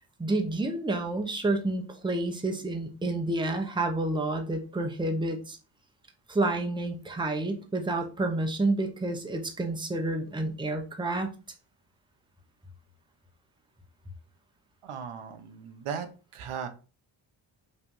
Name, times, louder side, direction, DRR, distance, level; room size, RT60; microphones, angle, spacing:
voice 1, 0.2-5.6 6.3-11.3, right 2 dB, 10° right, 4 dB, 0.9 m, -29 dB
voice 2, 14.8-16.1 16.3-16.7, right 7 dB, 85° right, 7 dB, 1.2 m, -37 dB
5.7 x 3.4 x 5.4 m, 0.34 s
wide cardioid pair, 175°, 49 cm